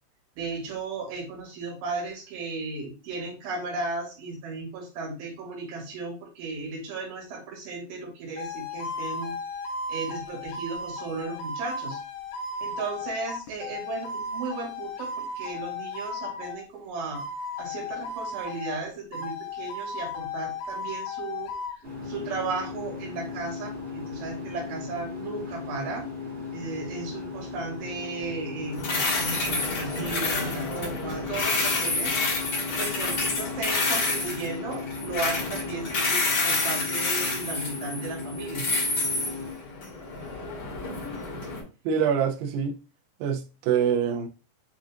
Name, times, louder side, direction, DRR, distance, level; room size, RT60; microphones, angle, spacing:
voice 1, 0.4-9.4 9.9-12.0 12.6-17.2 17.6-21.5 22.0-26.1 26.5-32.1 32.6-38.7, right 3 dB, 65° right, 3.2 m, -35 dB
sound 1, 8.4-16.7 17.1-18.8 19.1-21.8, left 3 dB, 85° left, 1.8 m, -35 dB
sound 2, 21.8-39.5, left 4 dB, 50° right, 0.7 m, -37 dB
sound 3, 28.7-41.6, left 3 dB, 55° left, 2.1 m, -29 dB
voice 2, 41.9-42.8 43.2-44.3, right 7 dB, 90° right, 2.1 m, -25 dB
7.2 x 2.6 x 2.4 m
omnidirectional pair, 4.8 m